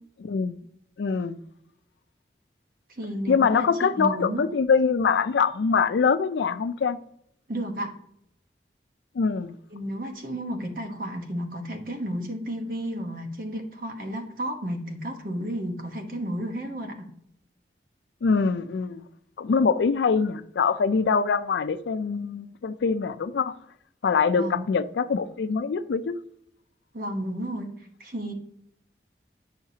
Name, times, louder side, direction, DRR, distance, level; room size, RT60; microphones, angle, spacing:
voice 1, 0.2-0.6 1.0-1.4 3.3-7.0 9.2-9.6 18.2-19.0 19.4-23.6 24.0-26.2, left 5 dB, 85° left, 0.4 m, -24 dB
voice 2, 3.0-4.4 7.5-7.9 9.7-17.1 24.3-24.7 26.9-27.7 28.0-28.3, equal, 50° right, 1.1 m, -32 dB
8.6 x 5.6 x 2.8 m
head